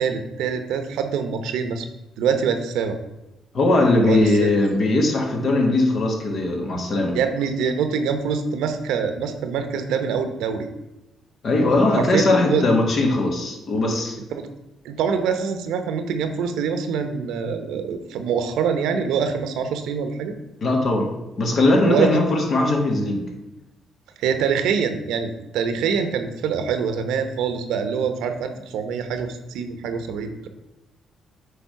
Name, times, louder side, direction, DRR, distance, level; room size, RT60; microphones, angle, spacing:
voice 1, 0.0-1.9 2.2-3.0 4.0-4.5 7.1-10.7 12.0-12.6 14.3-14.5 14.8-20.3 21.8-22.1 24.2-30.5, right 6 dB, 90° right, 8 dB, 0.8 m, -24 dB
voice 2, 3.5-7.2 11.4-14.2 20.6-23.3, left 2 dB, 50° left, 2 dB, 1.8 m, -20 dB
8.4 x 3.6 x 5.7 m, 0.93 s
cardioid pair, 90°, 0 cm